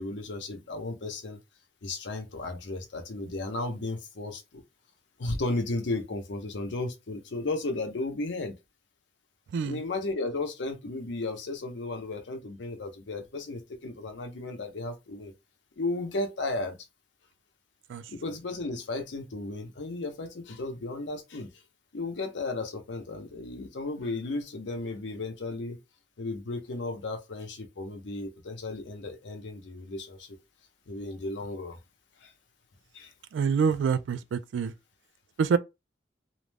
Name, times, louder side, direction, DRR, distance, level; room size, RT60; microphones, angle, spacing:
voice 1, 0.0-1.4 1.8-4.6 5.2-8.5 9.6-15.3 15.8-16.8 18.1-21.5 21.9-25.8 26.2-30.4 30.9-31.8 32.2-32.3 32.9-33.1, left 2 dB, 75° left, 0.6 m, -34 dB
voice 2, 33.3-34.7 35.4-35.6, right 6 dB, 85° right, 0.3 m, -26 dB
2.5 x 2.0 x 3.2 m
head